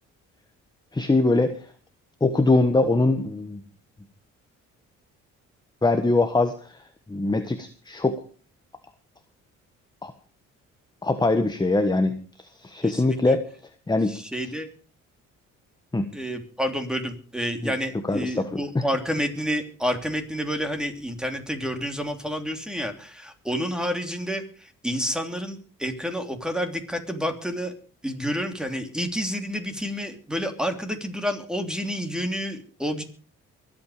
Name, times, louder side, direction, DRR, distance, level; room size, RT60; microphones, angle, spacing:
voice 1, 0.9-1.6 2.2-3.6 5.8-6.8 7.1-8.2 10.0-10.1 11.0-12.1 12.6-13.4 13.9-14.2 15.9-16.1 17.6-17.7 18.1-18.8, left 2 dB, 15° left, 7 dB, 1.4 m, -22 dB
voice 2, 12.8-13.4 14.1-14.7 16.1-27.7 28.0-33.0, equal, ahead, 5 dB, 3.1 m, -29 dB
24.0 x 8.9 x 5.0 m, 0.40 s
cardioid pair, 90°, 30 cm